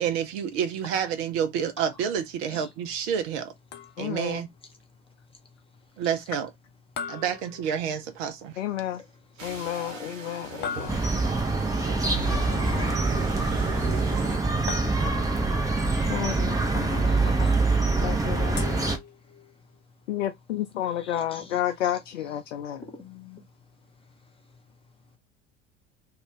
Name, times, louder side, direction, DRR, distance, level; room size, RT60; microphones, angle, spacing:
voice 1, 0.0-3.5 4.0-4.5 6.0-6.5 7.1-8.6, right 8 dB, 55° right, 0.6 m, -29 dB
sound 1, 3.7-4.3 7.0-8.2 10.6-11.5 14.7-15.5 18.6-19.6, left 6 dB, 30° left, 0.6 m, -39 dB
voice 2, 4.0-4.4 8.6-9.0 9.4-11.0 12.5-13.0 15.9-17.5 18.0-19.0 20.1-22.8, left 11 dB, 70° left, 0.5 m, -32 dB
sound 2, 9.4-14.4, right 3 dB, 85° right, 0.8 m, -38 dB
sound 3, 10.9-19.0, right 3 dB, 10° right, 0.7 m, -25 dB
voice 3, 13.4-13.8 17.1-17.6 21.0-21.6 22.8-23.4, left 3 dB, 15° left, 1.1 m, -47 dB
2.4 x 2.3 x 3.6 m
figure-of-eight pair, 65°, 37 cm